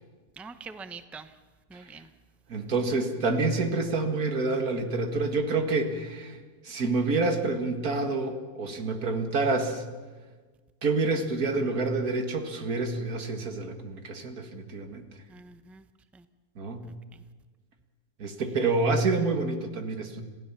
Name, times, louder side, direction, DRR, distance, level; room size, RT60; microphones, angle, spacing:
voice 1, 0.4-1.3 1.7-2.1 15.3-15.8 16.1-16.2 17.1-17.2, right 4 dB, ahead, 11 dB, 0.5 m, -44 dB
voice 2, 2.5-6.4 6.6-9.8 10.8-15.0 16.6-16.8 18.2-20.2, right 3 dB, 65° right, 6 dB, 2.3 m, -28 dB
27.0 x 16.0 x 7.2 m, 1.4 s
omnidirectional pair, 1.7 m